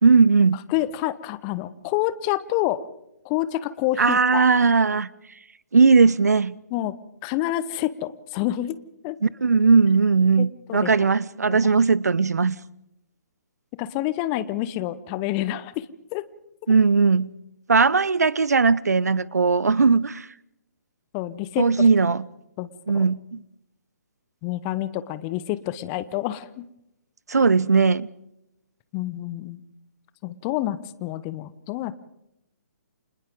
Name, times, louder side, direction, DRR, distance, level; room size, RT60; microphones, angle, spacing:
voice 1, 0.0-0.6 4.0-5.1 5.7-6.5 9.2-12.6 16.7-17.3 17.7-20.3 21.6-22.2 22.9-23.2 27.3-28.1, right 4 dB, 70° right, 0.7 m, -18 dB
voice 2, 0.7-2.8 3.2-4.5 6.7-6.9 7.2-8.8 9.0-9.2 10.4-11.1 11.5-11.6 13.8-15.9 16.1-16.2 21.1-21.7 22.6-22.7 22.9-23.0 24.4-26.6 28.9-29.6 30.2-31.9, left 14 dB, 25° left, 0.9 m, -28 dB
29.5 x 26.5 x 3.7 m
figure-of-eight pair, 130°, 9 cm